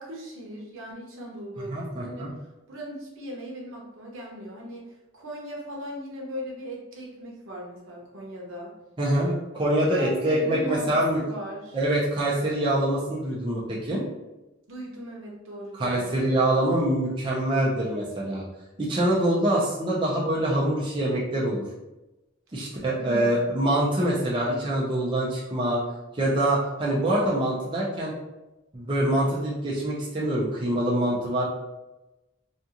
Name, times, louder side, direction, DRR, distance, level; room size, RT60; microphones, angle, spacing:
voice 1, 0.0-2.3 2.7-8.7 9.8-11.8 14.7-16.6 23.0-23.5, equal, 85° right, -2 dB, 0.8 m, -38 dB
voice 2, 1.7-2.3 9.0-11.2 11.7-14.0 15.7-18.4 18.8-21.6 22.5-25.8 26.1-28.1 28.7-31.4, right 1 dB, 25° right, -5 dB, 0.5 m, -25 dB
2.5 x 2.3 x 2.8 m, 1.0 s
head